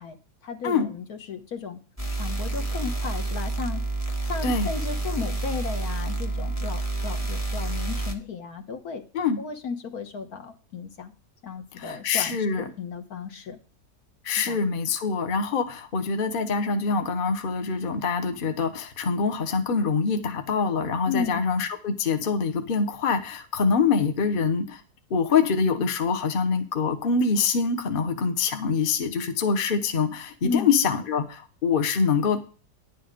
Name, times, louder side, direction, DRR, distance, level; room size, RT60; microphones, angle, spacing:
voice 1, 0.0-1.8 2.1-3.8 4.1-9.0 9.4-11.1 11.4-13.6 14.4-14.6 21.1-21.4 30.4-30.7, left 5 dB, 60° left, 7 dB, 1.6 m, -34 dB
sound 1, 2.0-8.1, right 2 dB, 10° left, 1.2 m, -29 dB
voice 2, 11.8-12.6 14.2-24.8 25.1-32.4, left 5 dB, 40° left, 8 dB, 1.0 m, -25 dB
10.5 x 7.7 x 5.1 m, 0.37 s
omnidirectional pair, 1.8 m